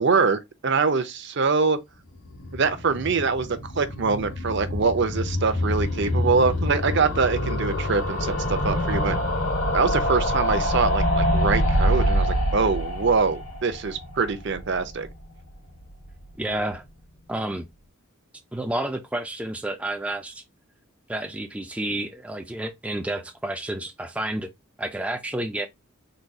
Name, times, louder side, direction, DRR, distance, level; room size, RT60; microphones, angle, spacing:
voice 1, 0.0-1.8 2.5-9.2 9.7-15.1, right 4 dB, 55° right, 0.6 m, -24 dB
sound 1, 2.2-15.2 15.5-15.6 15.8-15.9 16.1-16.2, equal, 90° left, 2.0 m, -26 dB
voice 2, 16.4-16.8 17.3-17.7 18.5-20.4 21.1-24.5 24.8-25.7, right 1 dB, 5° right, 0.3 m, -30 dB
4.0 x 2.3 x 4.6 m
head